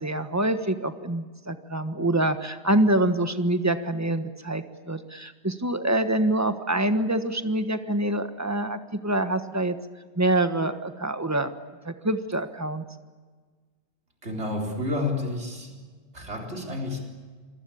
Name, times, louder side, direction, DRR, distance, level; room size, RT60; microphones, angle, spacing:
voice 1, 0.0-9.8 10.2-11.5 11.8-12.8, right 1 dB, 15° right, 9 dB, 1.3 m, -25 dB
voice 2, 14.2-15.7 16.1-17.0, left 2 dB, 80° right, 1 dB, 4.2 m, -30 dB
27.0 x 21.0 x 8.6 m, 1.5 s
omnidirectional pair, 1.1 m